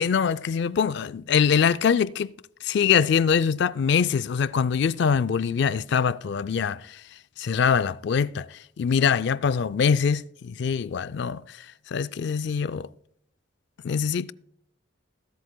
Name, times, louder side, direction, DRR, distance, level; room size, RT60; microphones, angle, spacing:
voice 1, 0.0-2.3 2.6-7.0 7.4-12.9 13.8-14.3, left 6 dB, 55° left, 0.3 m, -24 dB
21.0 x 8.1 x 2.2 m
head